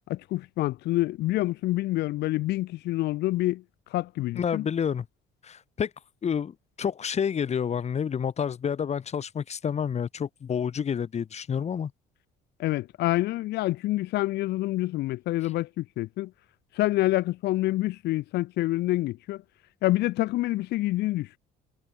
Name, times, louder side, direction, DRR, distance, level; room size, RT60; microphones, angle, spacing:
voice 1, 0.1-3.6 3.9-4.7 12.6-16.3 16.8-19.4 19.8-21.4, left 17 dB, 80° left, 3.8 m, -27 dB
voice 2, 4.3-5.1 5.4-5.9 6.2-11.9, left 7 dB, 40° left, 2.6 m, -29 dB
cardioid pair, 110°, 17 cm